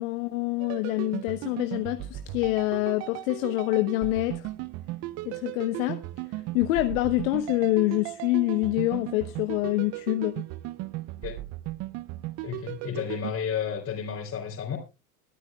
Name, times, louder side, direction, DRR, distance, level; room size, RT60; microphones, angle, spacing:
voice 1, 0.0-4.5 5.2-6.0 6.5-10.3, left 18 dB, 60° left, 1.1 m, -26 dB
sound 1, 0.6-13.3, right 17 dB, 35° right, 0.6 m, -36 dB
voice 2, 12.4-14.8, left 8 dB, 30° left, 3.4 m, -32 dB
22.0 x 10.5 x 2.3 m
hypercardioid pair, 100°, 47 cm